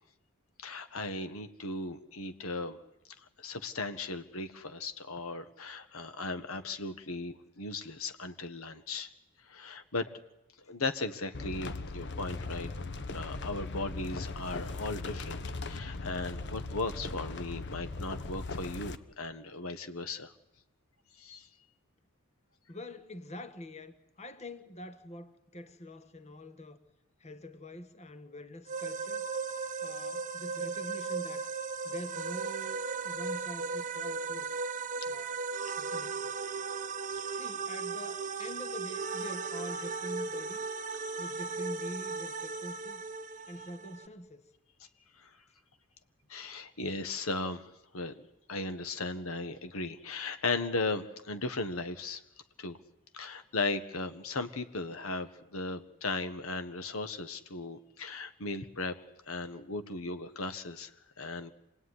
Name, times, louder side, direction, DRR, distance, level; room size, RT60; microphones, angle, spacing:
voice 1, 0.6-2.8 3.4-9.1 9.5-10.1 10.7-12.7 13.1-20.3 21.2-21.5 45.2-45.3 46.3-48.1 48.5-52.2 52.6-52.8 53.1-58.9 59.3-61.5, left 3 dB, 70° left, 1.5 m, -37 dB
sound 1, 11.3-19.0, left 3 dB, 55° left, 1.2 m, -39 dB
voice 2, 22.7-26.8 27.2-29.3 29.8-31.5 31.8-34.6 35.1-35.4 35.7-36.7 37.3-40.7 41.2-43.0 43.5-44.4, equal, 30° left, 1.5 m, -45 dB
sound 2, 28.7-44.1, right 4 dB, 35° right, 1.0 m, -36 dB
27.0 x 19.0 x 9.8 m
head